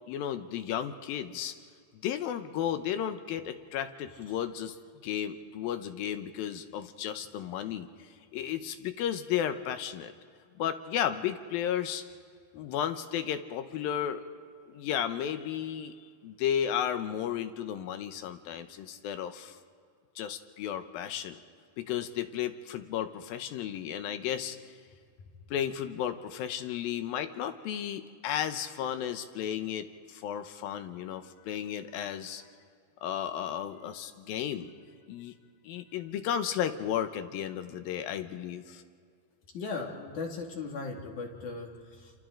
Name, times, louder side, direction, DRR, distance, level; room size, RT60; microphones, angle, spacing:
voice 1, 0.1-1.5 2.0-4.8 5.0-10.1 10.6-12.0 12.5-14.2 14.7-16.0 16.2-19.6 20.2-21.4 21.8-24.6 25.5-32.5 33.0-34.7 35.1-35.4 35.6-38.8, left 9 dB, 75° left, 9 dB, 2.6 m, -33 dB
voice 2, 39.5-42.1, left 4 dB, 55° left, 0 dB, 3.4 m, -37 dB
28.5 x 28.0 x 3.8 m, 2.1 s
omnidirectional pair, 4.4 m